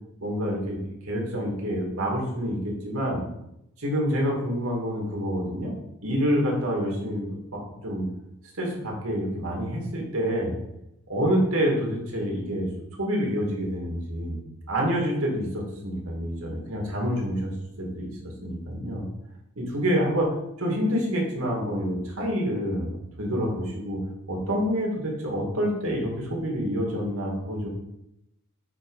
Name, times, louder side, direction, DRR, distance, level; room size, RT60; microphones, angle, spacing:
voice 1, 0.2-0.8 1.0-3.2 3.8-5.7 6.0-8.0 8.6-10.6 11.1-12.7 13.0-14.4 14.7-17.5 17.8-19.1 19.6-20.3 20.6-22.9 23.2-24.0 24.3-27.7, equal, 85° right, -1 dB, 2.4 m, -27 dB
8.7 x 3.8 x 5.5 m, 0.84 s
head